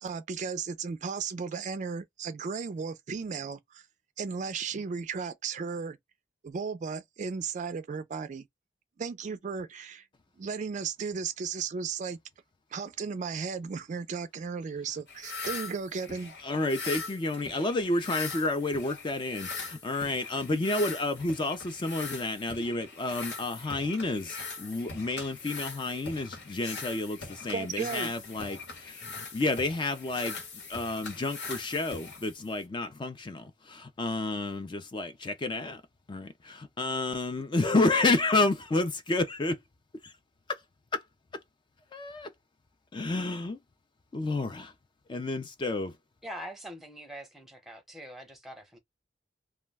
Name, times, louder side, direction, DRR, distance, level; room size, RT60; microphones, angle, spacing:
voice 1, 0.0-3.9 4.2-6.0 6.4-8.5 9.0-10.1 10.4-12.2 12.7-16.3 27.5-28.1, right 5 dB, 45° right, 0.3 m, -35 dB
sound 1, 15.1-32.7, left 4 dB, 75° left, 1.1 m, -41 dB
voice 2, 16.4-30.4 30.7-35.8 36.1-39.6 40.9-41.0 41.9-42.3 42.9-43.6 44.1-44.7 45.1-45.9, left 2 dB, 25° left, 0.4 m, -30 dB
voice 3, 46.2-48.8, equal, ahead, 0.7 m, -43 dB
2.3 x 2.1 x 3.3 m
head